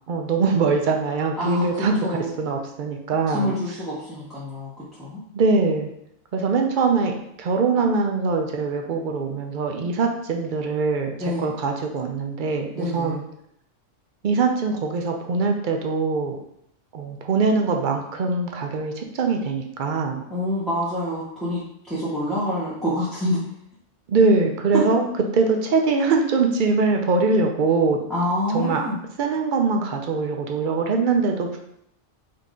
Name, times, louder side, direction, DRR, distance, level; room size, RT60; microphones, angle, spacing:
voice 1, 0.1-3.5 5.3-5.9 6.3-13.2 14.2-16.4 16.9-20.2 24.1-25.0 25.3-28.0 28.5-28.9 29.2-31.6, right 4 dB, 55° right, 3 dB, 0.6 m, -22 dB
voice 2, 1.4-2.4 3.3-5.2 11.2-11.5 12.8-13.2 20.3-21.6 21.9-23.4 24.7-24.8 28.1-29.0, left 1 dB, ahead, -10 dB, 0.7 m, -27 dB
3.9 x 2.8 x 3.6 m, 0.74 s
omnidirectional pair, 1.3 m